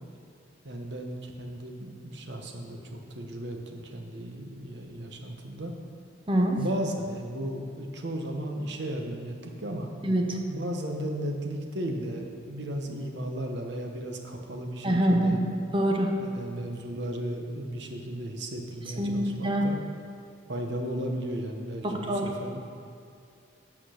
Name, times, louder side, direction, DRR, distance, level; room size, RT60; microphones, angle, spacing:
voice 1, 0.6-5.7 6.6-9.9 10.5-15.4 16.2-19.8 20.5-22.6, right 1 dB, 60° right, 3 dB, 1.0 m, -35 dB
voice 2, 6.3-6.6 10.0-10.4 14.8-15.4 15.7-16.1 19.0-19.6 21.8-22.2, right 1 dB, 25° right, 2 dB, 0.8 m, -25 dB
8.9 x 6.0 x 6.4 m, 2.5 s
head